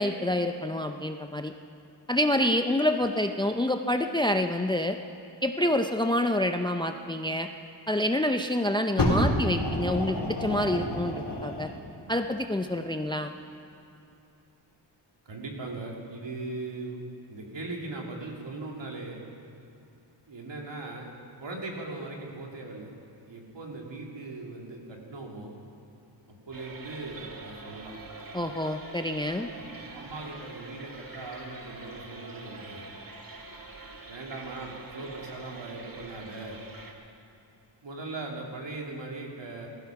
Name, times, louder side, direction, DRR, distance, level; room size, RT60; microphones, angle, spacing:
voice 1, 0.0-1.5 2.1-5.0 5.4-7.5 7.9-11.7 12.1-13.3 28.3-29.5, left 1 dB, 10° left, 7 dB, 0.5 m, -27 dB
Fire, 9.0-11.8 12.6-12.7, left 1 dB, 65° left, 4.0 m, -28 dB
voice 2, 15.2-17.0 17.3-19.2 20.3-21.1 21.4-22.9 23.3-25.5 26.3-27.9 29.6-32.9 34.1-36.6 37.8-39.7, right 2 dB, 70° right, -1 dB, 2.7 m, -39 dB
sound 1, 26.5-36.9, right 3 dB, 50° right, 1.8 m, -45 dB
16.5 x 14.5 x 5.8 m, 2.7 s
wide cardioid pair, 90°, 45 cm